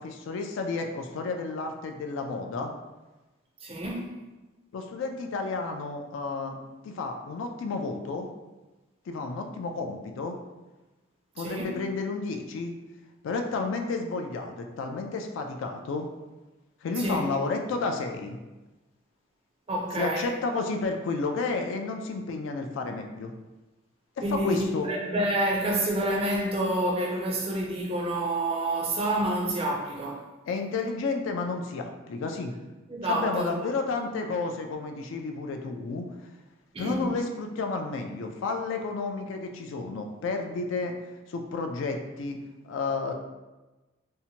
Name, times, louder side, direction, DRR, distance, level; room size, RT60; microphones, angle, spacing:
voice 1, 0.0-2.7 4.7-6.6 6.8-8.3 9.1-10.4 11.4-12.7 13.2-16.1 16.8-18.4 20.0-23.3 24.2-24.9 30.5-32.5 33.0-36.1 36.8-40.9 41.3-42.4 42.6-43.1, left 3 dB, 70° left, 0.3 m, -31 dB
voice 2, 3.6-4.1 11.4-11.7 17.0-17.3 19.7-20.3 24.2-30.2 32.9-33.6 36.7-37.1, right 1 dB, 30° right, 0.4 m, -28 dB
2.7 x 2.1 x 2.7 m
head